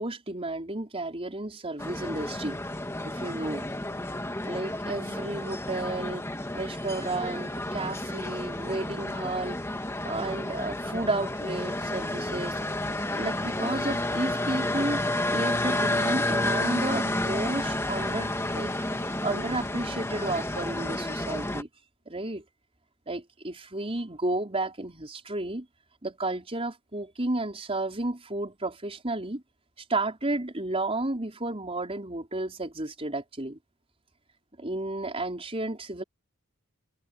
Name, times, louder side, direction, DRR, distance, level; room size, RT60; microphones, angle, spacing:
voice 1, 0.0-2.6 3.0-3.6 4.5-6.3 6.5-9.6 10.1-12.6 13.2-15.0 15.3-18.7 19.2-21.7 22.1-22.4 23.1-25.7 26.0-29.4 29.9-33.6 34.6-36.0, right 2 dB, 25° right, 4.8 m, -32 dB
sound 1, 1.8-21.6, left 1 dB, 15° left, 1.9 m, -31 dB
head